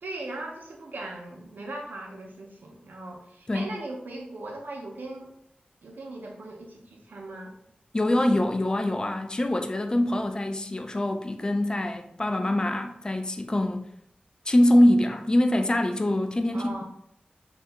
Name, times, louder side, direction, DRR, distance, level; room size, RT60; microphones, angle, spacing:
voice 1, 0.0-5.3 5.8-7.5 16.5-16.8, right 2 dB, 85° right, 0.6 m, -39 dB
voice 2, 7.9-13.8 14.5-16.8, left 1 dB, 25° left, 0.3 m, -24 dB
2.7 x 2.3 x 3.3 m
wide cardioid pair, 70°, 3 cm